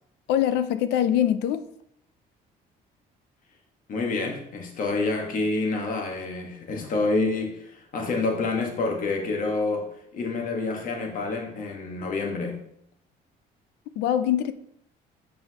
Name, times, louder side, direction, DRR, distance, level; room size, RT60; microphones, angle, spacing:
voice 1, 0.3-1.6 14.0-14.5, left 10 dB, 85° left, 0.5 m, -23 dB
voice 2, 3.9-9.9 10.1-12.6, left 3 dB, 55° left, 1.5 m, -28 dB
7.5 x 5.3 x 3.0 m
cardioid pair, 110°, 17 cm